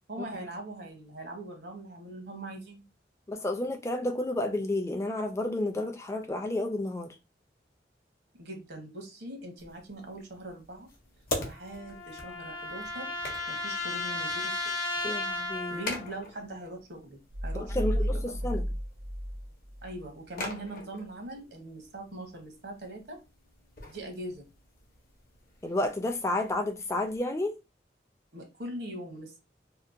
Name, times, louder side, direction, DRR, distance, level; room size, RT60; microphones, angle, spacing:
voice 1, 0.1-2.9 8.4-10.9 11.4-13.1 13.5-14.6 15.7-18.7 19.8-23.2 23.9-24.5 28.3-29.4, right 1 dB, 70° right, 0.9 m, -41 dB
voice 2, 3.3-7.1 15.0-15.8 17.5-18.6 25.6-27.5, left 1 dB, 15° left, 0.3 m, -31 dB
sound 1, 9.6-27.2, left 2 dB, 50° left, 0.6 m, -44 dB
sound 2, 11.4-16.1, left 2 dB, 85° left, 0.8 m, -35 dB
sound 3, 17.3-20.1, equal, 45° right, 0.5 m, -32 dB
2.8 x 2.1 x 2.4 m
head